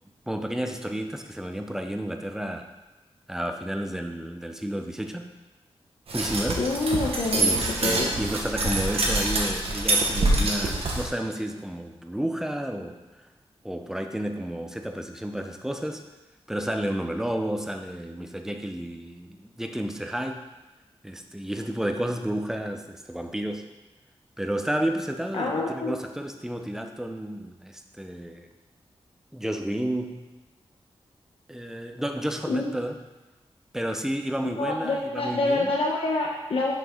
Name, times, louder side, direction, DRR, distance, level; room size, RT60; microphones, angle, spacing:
voice 1, 0.3-2.7 3.3-5.3 6.1-6.7 7.4-13.0 13.6-16.0 16.5-20.4 21.0-23.6 24.4-28.5 29.3-30.3 31.5-33.0 33.7-35.7, right 1 dB, 5° right, 5 dB, 0.5 m, -31 dB
sound 1, 6.1-11.1, right 2 dB, 75° right, 1.0 m, -25 dB
voice 2, 6.6-8.1 25.3-25.9 32.5-32.7 34.6-36.7, left 2 dB, 65° left, -2 dB, 0.7 m, -27 dB
6.3 x 5.0 x 3.7 m, 1.1 s
wide cardioid pair, 125°, 10 cm